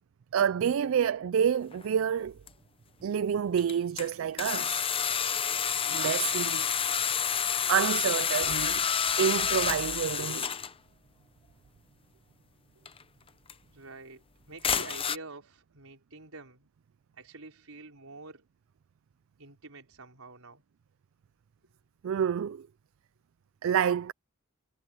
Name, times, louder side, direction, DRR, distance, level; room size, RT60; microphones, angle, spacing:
voice 1, 0.3-2.3 3.0-4.8 5.9-6.7 7.7-8.8 9.2-10.5 22.0-22.7 23.6-24.1, right 8 dB, 65° right, 0.3 m, -28 dB
sound 1, 1.7-1.8 2.5-2.6 3.6-4.1 4.4-10.7 12.9-13.0 13.5-13.6 14.6-15.2, left 7 dB, 25° left, 0.7 m, -29 dB
voice 2, 13.6-16.7 17.1-18.4 19.4-20.6, right 3 dB, 85° right, 4.6 m, -47 dB
head